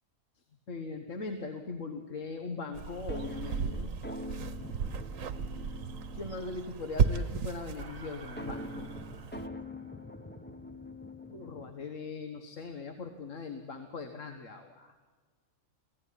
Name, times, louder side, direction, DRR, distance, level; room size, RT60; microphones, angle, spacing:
voice 1, 0.7-3.9 6.1-8.9 11.3-15.0, left 4 dB, 65° left, 6 dB, 1.7 m, -40 dB
sound 1, 2.7-9.5, right 6 dB, 75° right, 1.4 m, -34 dB
sound 2, 3.1-6.8 8.4-12.0, left 1 dB, 10° left, 0.9 m, -44 dB
sound 3, 7.8-10.4, right 4 dB, 55° right, 1.2 m, -53 dB
24.5 x 16.5 x 10.0 m, 1.4 s
omnidirectional pair, 1.4 m